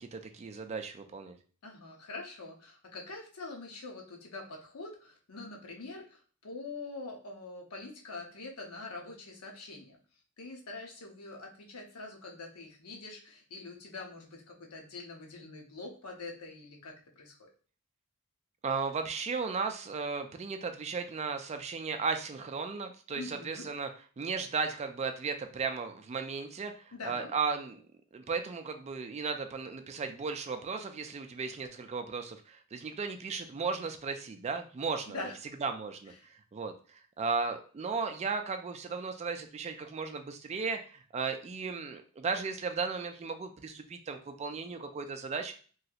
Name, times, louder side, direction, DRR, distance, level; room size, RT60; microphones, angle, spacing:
voice 1, 0.0-1.4 18.6-23.9 24.2-27.8 28.1-35.2 35.6-36.1 36.5-45.5, right 5 dB, 30° right, 7 dB, 0.3 m, -35 dB
voice 2, 1.6-10.0 10.4-17.4 23.1-23.7 26.9-27.3 35.1-35.4 36.2-36.3, left 3 dB, 75° left, 1 dB, 0.9 m, -44 dB
3.0 x 2.8 x 2.4 m, 0.40 s
head